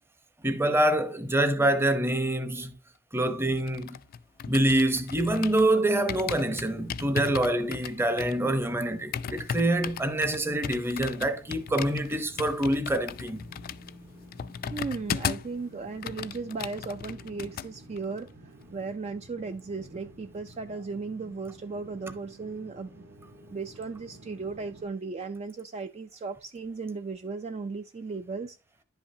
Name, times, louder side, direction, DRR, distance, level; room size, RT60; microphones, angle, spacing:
voice 1, 0.4-2.7 3.1-4.0 4.5-13.5, right 1 dB, 10° right, 0.7 m, -26 dB
sound 1, 3.4-5.7 6.1-15.6 15.9-17.7 18.0-18.2, left 7 dB, 45° left, 0.3 m, -36 dB
sound 2, 5.8-24.9, equal, 55° right, 1.3 m, -52 dB
voice 2, 14.7-23.0 23.5-28.6, right 4 dB, 30° right, 0.3 m, -36 dB
10.5 x 5.6 x 2.7 m
head